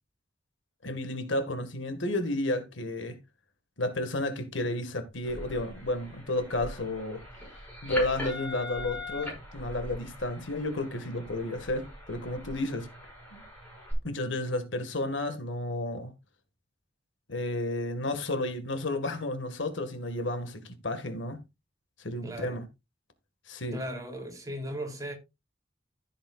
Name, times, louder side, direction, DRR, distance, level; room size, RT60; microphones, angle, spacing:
voice 1, 0.8-3.2 3.8-7.2 7.8-12.9 13.3-13.4 14.0-16.1 17.3-21.4 22.0-22.6 23.5-23.8, left 1 dB, 75° left, 1.8 m, -32 dB
sound 1, 5.2-13.9, left 1 dB, 10° left, 6.3 m, -41 dB
voice 2, 22.2-22.6 23.7-25.1, equal, 20° right, 3.1 m, -37 dB
14.5 x 7.8 x 2.4 m
head